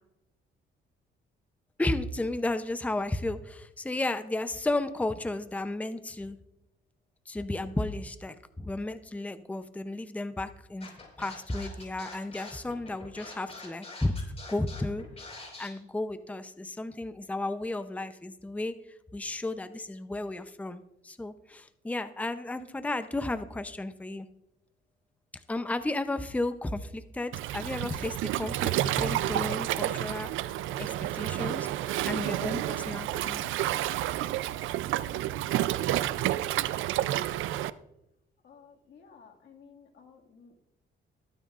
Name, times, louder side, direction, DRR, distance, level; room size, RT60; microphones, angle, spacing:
voice 1, 1.8-6.4 7.3-14.1 14.5-15.0 15.4-24.3 25.5-30.3 30.8-33.5, left 2 dB, 5° left, 10 dB, 0.6 m, -33 dB
Scratching (performance technique), 10.8-15.7, left 3 dB, 30° left, 4.6 m, -45 dB
Waves surf, 27.3-37.7, right 13 dB, 80° right, 0.5 m, -30 dB
voice 2, 38.4-40.6, left 6 dB, 60° left, 0 dB, 2.1 m, -55 dB
22.0 x 9.3 x 2.5 m, 0.87 s
cardioid pair, 90°, 20 cm